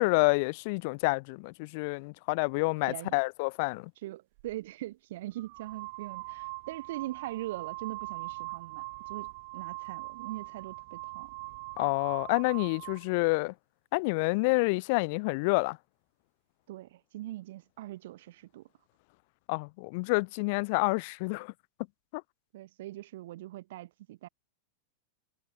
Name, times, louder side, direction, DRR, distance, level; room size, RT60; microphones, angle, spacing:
voice 1, 0.0-3.9 11.8-13.5 13.9-15.8 19.5-21.5 22.1-22.2, left 28 dB, 55° left, 0.4 m, -28 dB
voice 2, 4.0-11.3 16.7-18.7 22.5-24.3, right 15 dB, 70° right, 2.7 m, -41 dB
sound 1, 4.4-4.6 5.4-13.1, right 25 dB, 55° right, 5.8 m, -42 dB
supercardioid pair, 145°, 0 cm